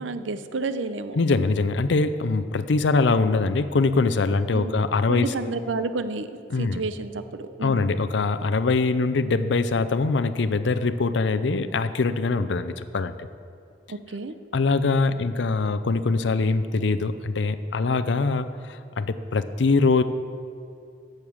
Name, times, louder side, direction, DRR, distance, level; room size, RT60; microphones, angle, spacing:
voice 1, 0.0-1.2 4.5-4.8 5.1-7.9 13.9-14.3, right 3 dB, 85° right, 11 dB, 0.6 m, -31 dB
voice 2, 1.2-5.3 6.5-6.8 7.6-13.2 14.5-20.0, left 3 dB, 70° left, 11 dB, 0.5 m, -23 dB
11.0 x 6.6 x 7.2 m, 2.5 s
head